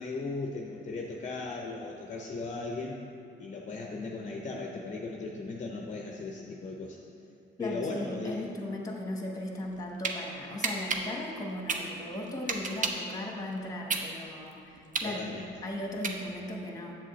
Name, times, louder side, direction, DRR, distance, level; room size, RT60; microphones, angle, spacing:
voice 1, 0.0-3.0 3.4-7.0 7.6-8.5 15.0-15.5, left 3 dB, 40° left, 0 dB, 0.6 m, -37 dB
voice 2, 7.6-17.0, left 1 dB, 15° left, 0 dB, 1.2 m, -37 dB
sound 1, 9.6-10.2 10.6-13.1 13.5-16.6, right 4 dB, 40° right, 0.7 m, -32 dB
7.3 x 7.3 x 3.1 m, 2.7 s
cardioid pair, 90°, 20 cm